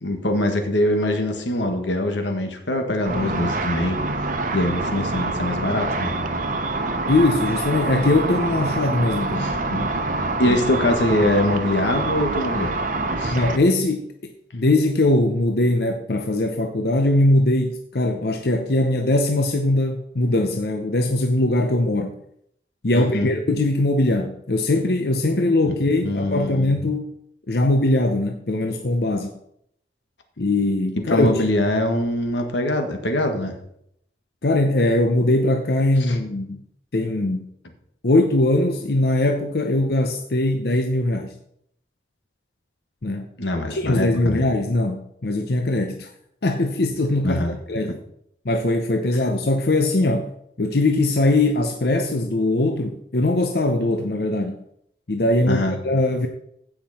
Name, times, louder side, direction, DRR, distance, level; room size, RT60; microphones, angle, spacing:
voice 1, 0.0-4.0 4.5-6.1 9.4-9.6 10.4-12.7 13.2-13.4 22.9-23.3 25.7-25.8 26.0-26.7 31.1-33.5 36.1-36.2 43.4-44.4 47.2-47.6 55.5-55.8, left 1 dB, 90° left, 5 dB, 1.7 m, -23 dB
Car / Traffic noise roadway noise / Engine, 3.0-13.6, right 2 dB, 45° right, 0.9 m, -26 dB
voice 2, 7.1-9.9 10.5-10.6 13.3-22.1 22.8-27.1 27.5-29.4 30.4-31.5 34.4-36.6 36.9-37.4 38.0-41.3 43.0-43.3 43.5-46.1 46.4-47.4 47.7-48.0 48.4-50.3 50.6-54.6 55.1-56.3, left 2 dB, 60° left, 5 dB, 0.7 m, -21 dB
15.5 x 5.9 x 4.3 m, 0.73 s
head